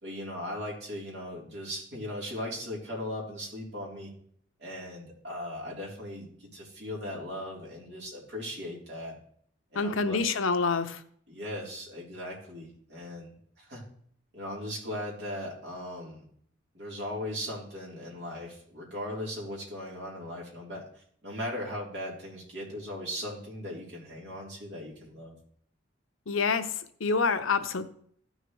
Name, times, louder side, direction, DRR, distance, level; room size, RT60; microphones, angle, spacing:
voice 1, 0.0-4.1 4.6-9.2 9.7-10.2 11.3-13.3 13.6-13.8 14.3-16.2 16.7-25.3, left 1 dB, 55° right, -4 dB, 3.4 m, -38 dB
voice 2, 9.7-11.0 26.3-26.7 27.0-27.8, left 4 dB, 85° left, 10 dB, 0.7 m, -27 dB
15.0 x 6.5 x 3.1 m, 0.62 s
head